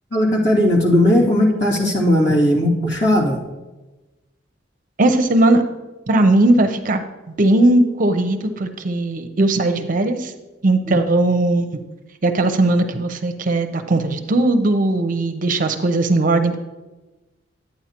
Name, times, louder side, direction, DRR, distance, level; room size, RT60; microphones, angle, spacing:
voice 1, 0.1-3.4 10.8-11.0, left 1 dB, 65° left, -4 dB, 2.5 m, -17 dB
voice 2, 5.0-5.6 6.1-7.0 7.4-10.3 10.6-11.7 12.2-16.6, right 2 dB, 45° right, 8 dB, 0.6 m, -18 dB
11.0 x 8.8 x 2.9 m, 1.1 s
head